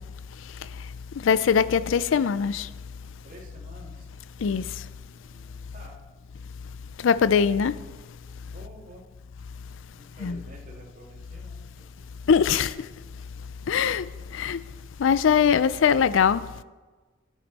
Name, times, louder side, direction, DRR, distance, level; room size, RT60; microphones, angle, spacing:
voice 1, 0.3-2.7 4.4-4.9 7.0-8.2 10.2-10.4 12.3-12.9 13.7-14.7 15.0-16.6, left 7 dB, 75° left, 0.4 m, -23 dB
voice 2, 3.2-4.1 5.0-6.0 8.5-9.0 10.0-12.1, right 1 dB, 45° right, 2.3 m, -49 dB
11.0 x 9.4 x 4.1 m
head